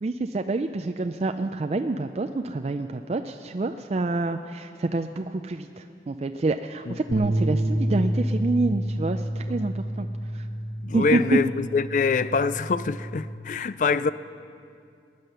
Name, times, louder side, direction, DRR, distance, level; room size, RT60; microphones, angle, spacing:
voice 1, 0.0-10.1 10.3-10.5 10.9-11.4, right 3 dB, 35° right, 0.4 m, -27 dB
sound 1, 7.1-13.4, right 1 dB, 80° right, 1.0 m, -29 dB
voice 2, 10.8-14.1, left 5 dB, 45° left, 0.3 m, -24 dB
20.0 x 9.2 x 6.7 m
head